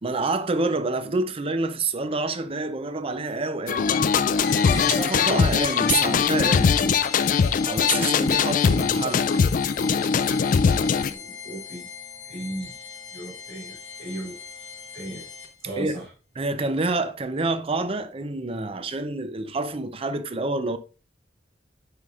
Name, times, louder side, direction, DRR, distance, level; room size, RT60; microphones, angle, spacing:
voice 1, 0.0-3.9 4.7-6.7 7.6-9.3 15.8-16.0 16.4-20.8, right 3 dB, 35° right, 0.6 m, -27 dB
sound 1, 3.7-11.1, left 6 dB, 50° left, 0.3 m, -21 dB
sound 2, 4.4-15.8, left 5 dB, 75° left, 1.0 m, -40 dB
voice 2, 4.7-5.0 6.5-7.3 8.0-8.1 11.0-11.9 12.3-12.7 13.1-14.4 14.9-15.2 15.6-16.0, right 1 dB, 80° right, 3.4 m, -36 dB
9.5 x 4.9 x 2.5 m
head